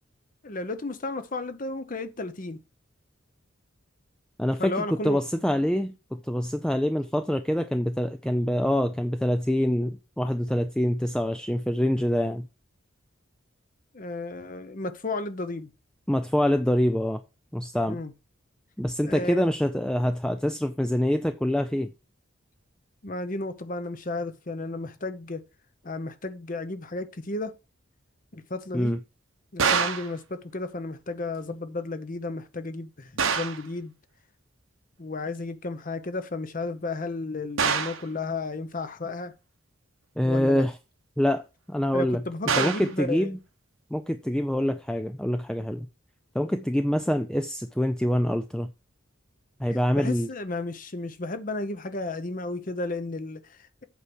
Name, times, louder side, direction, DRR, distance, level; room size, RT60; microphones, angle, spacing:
voice 1, 0.4-2.6 4.6-5.2 13.9-15.7 17.9-18.1 19.0-19.5 23.0-25.4 25.8-27.5 28.3-29.0 29.5-33.9 35.0-39.3 40.2-40.6 41.9-43.4 49.7-53.8, left 2 dB, 40° left, 0.8 m, -33 dB
voice 2, 4.4-12.5 16.1-17.2 17.5-18.0 18.8-21.9 28.7-29.0 40.2-40.7 41.2-41.4 41.7-42.2 42.6-43.4 43.9-45.9 46.3-48.7 49.6-50.3, equal, 5° left, 0.4 m, -25 dB
sound 1, 29.6-30.1 33.2-33.7 37.6-38.1 42.5-42.9, right 6 dB, 80° right, 1.2 m, -25 dB
8.3 x 4.8 x 6.0 m
head